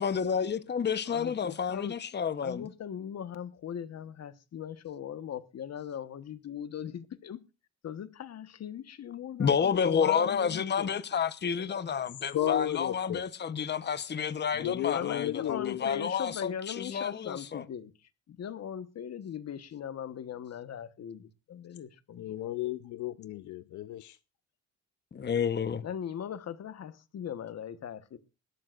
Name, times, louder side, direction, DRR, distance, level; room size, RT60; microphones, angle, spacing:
voice 1, 0.0-2.6 9.4-17.6 25.1-25.8, left 7 dB, 35° left, 1.0 m, -30 dB
voice 2, 1.1-1.9 2.4-7.4 7.8-10.9 14.9-17.9 18.3-22.4 25.8-28.2, left 9 dB, 60° left, 1.4 m, -39 dB
voice 3, 12.3-13.2 14.5-15.9 22.2-24.2, left 13 dB, 75° left, 0.7 m, -33 dB
20.5 x 12.5 x 2.5 m
cardioid pair, 90°, 30 cm